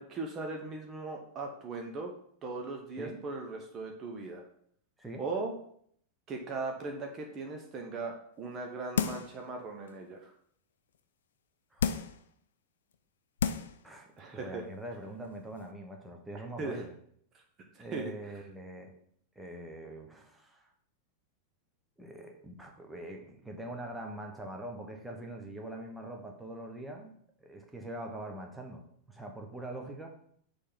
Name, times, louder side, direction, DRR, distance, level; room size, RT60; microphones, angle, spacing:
voice 1, 0.0-2.1 2.4-4.4 5.2-5.5 6.3-10.3 14.2-14.6 16.3-16.8 17.7-18.1, right 3 dB, 30° right, 2 dB, 0.9 m, -38 dB
sound 1, 9.0-9.4 9.9-10.0 11.8-12.2 12.9-13.0 13.4-13.8 14.2-14.3, left 7 dB, 65° left, 0.4 m, -31 dB
voice 2, 13.8-16.9 17.8-18.9 19.3-20.7 22.0-27.1 27.4-30.1, right 1 dB, 5° right, 2 dB, 1.1 m, -43 dB
6.6 x 3.4 x 5.7 m, 0.65 s
figure-of-eight pair, 90°, 0 cm